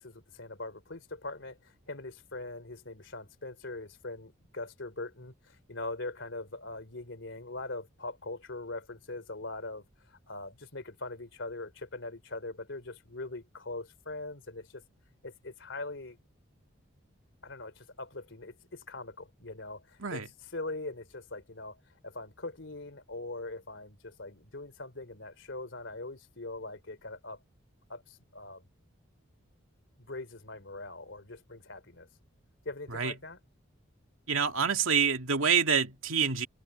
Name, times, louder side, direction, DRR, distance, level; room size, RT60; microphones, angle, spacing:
voice 1, 0.0-14.8 15.2-16.2 17.4-27.4 27.9-28.6 30.0-32.1 32.6-33.4, left 2 dB, 65° left, 3.3 m, -42 dB
voice 2, 34.3-36.5, right 6 dB, 85° right, 2.2 m, -27 dB
open air
head